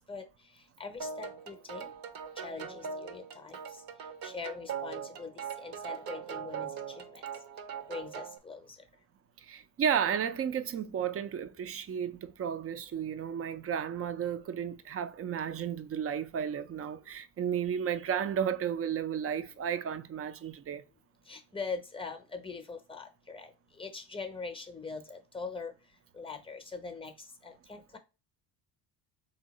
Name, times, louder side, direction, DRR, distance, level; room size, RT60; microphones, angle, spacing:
voice 1, 0.8-1.9 2.4-3.6 4.2-5.3 5.6-6.7 7.9-8.6 21.3-23.5 23.8-25.7 26.2-27.1 27.4-28.0, left 4 dB, 10° left, 0.7 m, -41 dB
sound 1, 1.0-8.4, right 7 dB, 55° right, 0.8 m, -41 dB
voice 2, 9.4-20.8, right 8 dB, 35° right, 0.5 m, -33 dB
3.6 x 2.8 x 4.1 m
cardioid pair, 100°, 43 cm